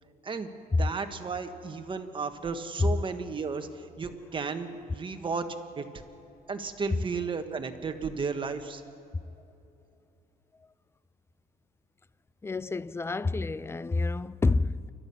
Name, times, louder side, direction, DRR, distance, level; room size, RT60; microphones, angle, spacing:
voice 1, 0.8-5.5 5.8-5.9 6.5-8.8, right 4 dB, 30° right, 1.5 m, -34 dB
voice 2, 12.4-14.9, left 3 dB, 15° left, 0.4 m, -27 dB
29.0 x 12.5 x 7.1 m
cardioid pair, 110°, 17 cm